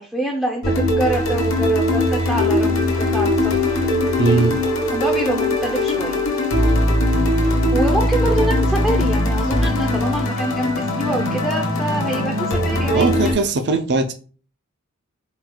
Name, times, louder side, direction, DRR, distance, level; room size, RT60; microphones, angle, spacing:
voice 1, 0.0-2.9 3.1-3.6 4.2-4.5 4.9-6.2 7.3-13.4, right 1 dB, ahead, -1 dB, 0.5 m, -26 dB
sound 1, 0.6-13.3, left 1 dB, 60° left, 1.1 m, -20 dB
voice 2, 4.2-4.6 12.9-14.1, right 3 dB, 50° right, 8 dB, 0.5 m, -19 dB
4.5 x 2.3 x 3.7 m, 0.39 s
head